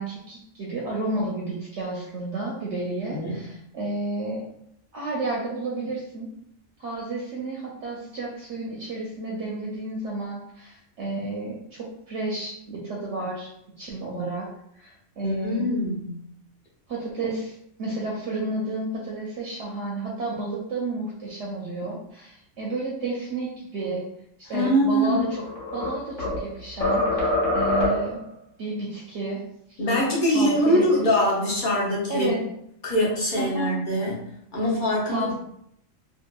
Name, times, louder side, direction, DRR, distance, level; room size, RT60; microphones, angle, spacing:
voice 1, 0.0-4.4 4.9-6.3 6.8-13.5 13.8-14.5 14.7-15.6 16.9-24.0 24.4-25.3 25.7-28.2 28.6-29.8 30.3-31.1 32.1-32.4 33.4-33.7 35.1-35.3, right 2 dB, 65° right, -3 dB, 0.8 m, -31 dB
voice 2, 3.1-3.5 15.2-16.2 24.5-25.3 29.8-32.3 32.8-34.2 34.5-35.3, equal, 45° left, -5 dB, 0.8 m, -23 dB
sound 1, 25.1-26.5 26.8-28.2, left 2 dB, 65° left, 1.2 m, -24 dB
2.7 x 2.4 x 2.2 m, 0.73 s
omnidirectional pair, 1.4 m